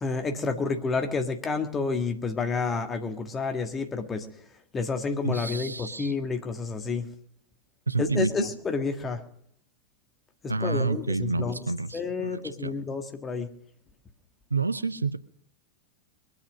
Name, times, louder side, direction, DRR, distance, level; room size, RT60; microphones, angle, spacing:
voice 1, 0.0-4.3 4.7-7.1 8.0-9.2 10.4-11.6 11.9-13.5, left 4 dB, 20° left, 6 dB, 1.6 m, -29 dB
voice 2, 5.2-6.1 7.9-8.3 10.5-12.7 14.5-15.2, right 3 dB, 80° right, 16 dB, 0.6 m, -29 dB
22.5 x 8.2 x 6.3 m, 0.68 s
figure-of-eight pair, 90°, 0 cm